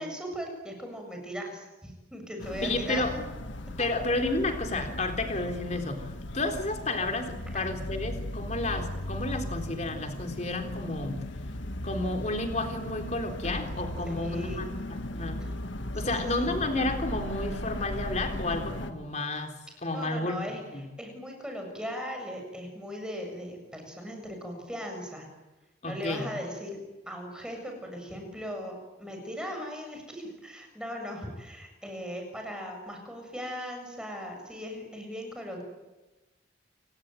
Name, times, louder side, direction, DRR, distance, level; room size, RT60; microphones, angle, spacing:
voice 1, 0.0-3.0 14.1-14.6 15.4-15.5 16.0-16.3 19.9-25.3 25.9-26.8 27.1-35.6, equal, 5° right, 3 dB, 7.1 m, -38 dB
sound 1, 2.4-18.9, left 1 dB, 85° left, 1.8 m, -37 dB
voice 2, 2.6-3.1 3.8-6.1 6.3-11.2 11.8-15.4 15.9-20.4 20.7-20.8 25.8-26.3, left 2 dB, 40° left, 5 dB, 3.7 m, -31 dB
29.0 x 18.0 x 9.1 m, 1.1 s
head